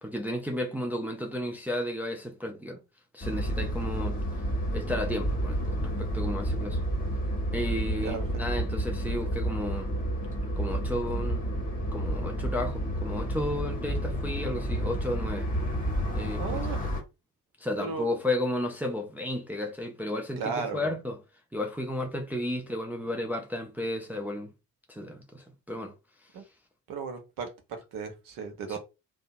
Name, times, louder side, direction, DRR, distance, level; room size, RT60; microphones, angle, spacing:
voice 1, 0.0-2.8 3.1-4.2 4.7-6.8 7.5-9.9 10.6-11.4 11.9-15.5 16.1-16.9 17.6-21.2 21.5-24.5 24.9-25.9 28.7-28.8, left 1 dB, 5° right, 0.3 m, -33 dB
sound 1, 3.2-17.0, right 1 dB, 20° left, 1.1 m, -30 dB
voice 2, 16.4-16.8 17.8-18.1 20.4-20.9 26.3-26.4 26.9-28.8, right 5 dB, 45° right, 0.8 m, -35 dB
2.7 x 2.0 x 2.6 m
figure-of-eight pair, 50°, 46 cm